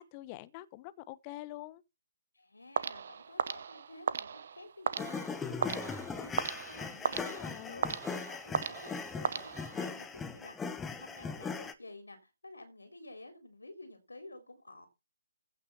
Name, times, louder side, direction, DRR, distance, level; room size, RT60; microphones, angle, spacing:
voice 1, 0.0-1.8 7.1-7.9, left 16 dB, 25° left, 0.9 m, -46 dB
voice 2, 2.3-14.9, left 2 dB, 80° left, 3.8 m, -51 dB
sound 1, 2.8-10.0, right 6 dB, 55° right, 0.9 m, -37 dB
sound 2, 5.0-11.7, left 5 dB, 10° left, 1.1 m, -39 dB
15.0 x 6.7 x 5.6 m
figure-of-eight pair, 140°, 0 cm